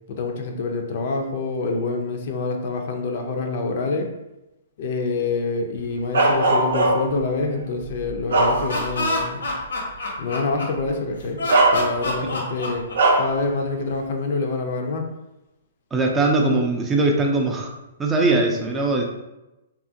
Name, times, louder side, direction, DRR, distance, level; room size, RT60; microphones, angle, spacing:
voice 1, 0.1-4.1 4.8-9.4 10.2-11.4 11.7-12.8 13.2-15.0, left 3 dB, 55° left, 3 dB, 0.4 m, -26 dB
Bark, 6.1-7.2 7.8-9.1 9.5-9.7 10.8-10.9 11.5-12.3 12.9-13.4, right 2 dB, 80° right, 0.5 m, -19 dB
Laughter, 8.4-10.9 11.4-13.4, left 2 dB, 85° left, 0.8 m, -27 dB
voice 2, 15.9-17.7 18.0-19.0, right 2 dB, 15° right, 0 dB, 0.4 m, -20 dB
2.8 x 2.4 x 2.6 m, 0.95 s
hypercardioid pair, 135°, 0 cm